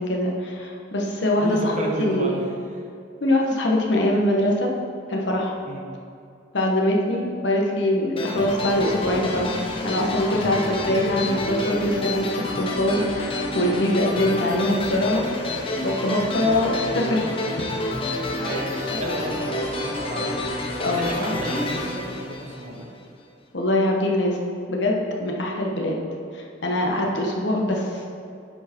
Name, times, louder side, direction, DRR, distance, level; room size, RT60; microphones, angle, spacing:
voice 1, 0.0-2.4 3.2-4.7 5.1-5.5 6.5-9.6 9.8-15.3 15.8-17.5 18.9-19.0 20.8-21.4 23.5-24.4 24.7-26.0 26.3-28.0, left 1 dB, 70° left, -1 dB, 1.2 m, -23 dB
voice 2, 1.4-2.4 5.6-5.9 16.5-16.6 18.4-22.9, right 1 dB, 40° right, 0 dB, 1.1 m, -32 dB
sound 1, 8.2-23.0, left 2 dB, 30° left, 0.9 m, -29 dB
10.0 x 4.6 x 4.5 m, 2.6 s
head